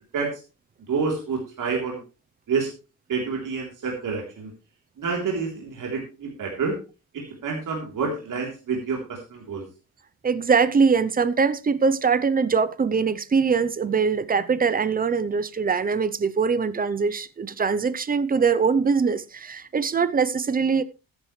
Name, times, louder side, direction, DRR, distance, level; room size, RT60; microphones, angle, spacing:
voice 1, 0.9-2.0 2.5-2.7 3.1-4.5 5.0-6.8 7.1-9.6, right 5 dB, 65° right, 3.6 m, -28 dB
voice 2, 10.2-20.8, right 5 dB, 25° right, 0.6 m, -22 dB
14.0 x 10.5 x 3.2 m
wide cardioid pair, 180°, 34 cm